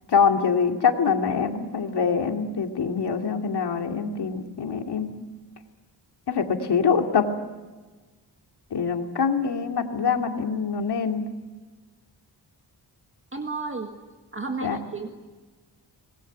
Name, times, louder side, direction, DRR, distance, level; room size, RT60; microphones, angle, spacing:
voice 1, 0.1-5.1 6.3-7.3 8.7-11.2 14.6-14.8, left 6 dB, 70° left, 4 dB, 2.6 m, -24 dB
voice 2, 13.3-13.9 14.3-15.1, right 3 dB, 30° right, 4 dB, 1.9 m, -32 dB
25.5 x 20.5 x 9.4 m, 1.3 s
wide cardioid pair, 125°, 41 cm